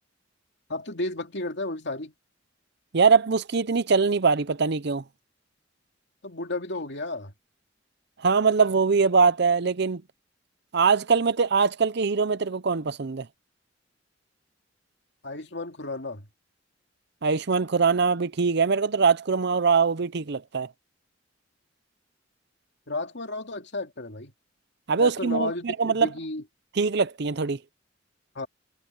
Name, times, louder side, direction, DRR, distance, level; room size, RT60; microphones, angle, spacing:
voice 1, 0.7-2.1 6.2-7.3 15.2-16.3 22.9-24.3 25.0-26.4 28.3-28.5, left 2 dB, 65° left, 2.8 m, -33 dB
voice 2, 2.9-5.0 8.2-10.0 10.7-13.3 17.2-20.7 24.9-26.1 26.8-27.6, right 5 dB, 60° right, 0.7 m, -22 dB
head